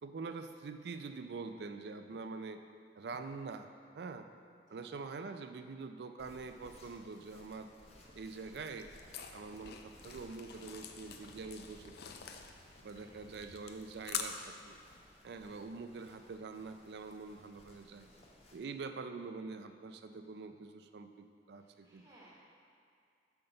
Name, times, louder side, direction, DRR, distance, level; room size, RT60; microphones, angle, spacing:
voice 1, 0.0-2.6 3.0-3.7 3.9-4.3 4.7-7.7 8.2-8.9 9.3-11.9 12.8-14.8 15.2-18.1 18.5-22.0, right 4 dB, 65° right, 8 dB, 0.4 m, -45 dB
sound 1, 6.2-18.6, left 1 dB, 35° left, 0.8 m, -60 dB
sound 2, 8.5-14.2, left 8 dB, 60° left, 0.5 m, -46 dB
voice 2, 13.0-13.3 18.0-18.4 21.5-22.3, right 1 dB, 20° right, -8 dB, 1.0 m, -63 dB
6.6 x 5.8 x 3.9 m, 2.4 s
head